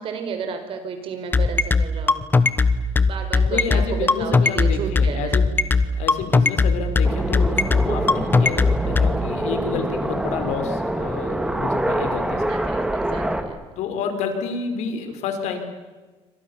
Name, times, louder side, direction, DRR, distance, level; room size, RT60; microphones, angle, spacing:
voice 1, 0.0-2.2 3.0-5.4 12.5-13.6, right 6 dB, 50° right, 7 dB, 5.0 m, -32 dB
sound 1, 1.3-9.1, left 4 dB, 15° left, 1.2 m, -17 dB
voice 2, 3.4-12.6 13.8-15.6, left 6 dB, 75° left, 7 dB, 5.0 m, -29 dB
sound 2, 7.0-13.4, right 1 dB, 5° right, 2.5 m, -25 dB
28.0 x 25.0 x 7.3 m, 1.2 s
cardioid pair, 150°, 12 cm